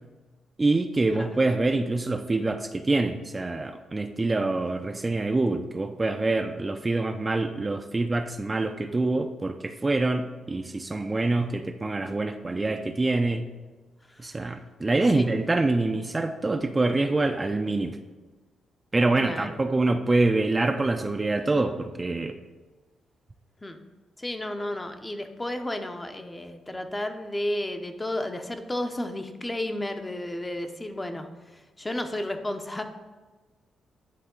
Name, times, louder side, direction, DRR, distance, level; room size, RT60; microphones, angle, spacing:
voice 1, 0.6-13.5 14.2-18.0 18.9-22.4, right 2 dB, 25° right, 7 dB, 0.4 m, -25 dB
voice 2, 14.1-14.5 15.1-15.3 19.2-19.5 23.6-23.8 24.2-31.3 31.8-32.8, left 1 dB, 20° left, 6 dB, 0.6 m, -32 dB
9.4 x 3.6 x 3.8 m, 1.3 s
supercardioid pair, 65°, 0 cm